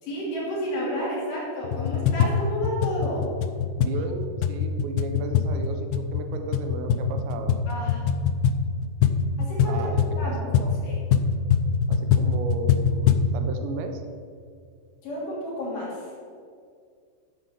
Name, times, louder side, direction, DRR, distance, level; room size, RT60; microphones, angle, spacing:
voice 1, 0.0-3.2 7.7-8.0 9.4-9.9 10.1-11.0 15.0-16.1, equal, 50° left, -6 dB, 4.1 m, -31 dB
sound 1, 1.6-13.3, left 7 dB, 90° left, 2.1 m, -24 dB
voice 2, 3.7-7.6 9.7-10.7 11.9-14.0, right 3 dB, 80° right, 5 dB, 3.1 m, -35 dB
12.5 x 5.1 x 7.0 m, 2.2 s
omnidirectional pair, 5.1 m